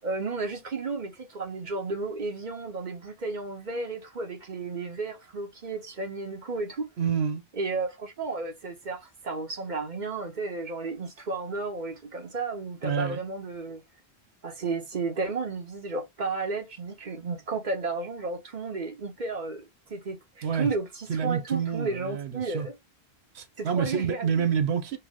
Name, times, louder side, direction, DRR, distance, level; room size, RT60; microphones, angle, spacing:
voice 1, 0.0-6.9 7.5-13.8 14.4-22.8 23.6-24.5, right 3 dB, 45° right, 1.0 m, -33 dB
voice 2, 7.0-7.4 12.8-13.2 20.4-20.7 21.1-22.7 23.3-25.0, right 7 dB, 80° right, 1.0 m, -28 dB
4.6 x 2.1 x 3.5 m
omnidirectional pair, 1.1 m